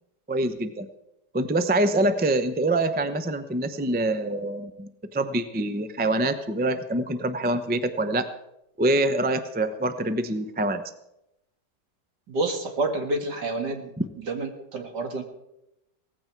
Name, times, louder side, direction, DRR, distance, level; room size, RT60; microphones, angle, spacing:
voice 1, 0.3-0.9 1.3-8.3 8.8-10.8, right 2 dB, 10° right, 9 dB, 0.4 m, -25 dB
voice 2, 12.3-13.9 14.2-15.2, right 2 dB, 70° right, 5 dB, 2.6 m, -28 dB
18.0 x 15.0 x 4.6 m, 0.86 s
omnidirectional pair, 1.9 m